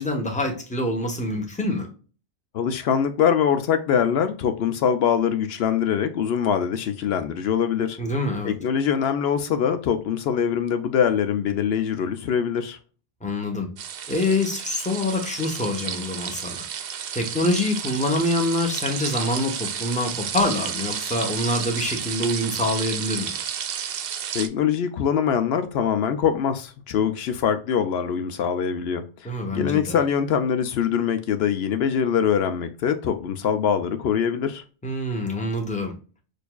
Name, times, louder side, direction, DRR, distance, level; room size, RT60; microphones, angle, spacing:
voice 1, 0.0-1.9 8.0-8.5 13.2-13.7 14.1-16.6 17.1-23.3 29.2-30.0 34.8-35.9, left 2 dB, 10° left, 0.9 m, -25 dB
voice 2, 2.5-8.0 8.4-12.8 24.3-34.6, left 8 dB, 75° left, 0.8 m, -23 dB
sound 1, 13.8-24.5, right 8 dB, 70° right, 0.7 m, -31 dB
6.5 x 2.5 x 2.3 m
omnidirectional pair, 1.1 m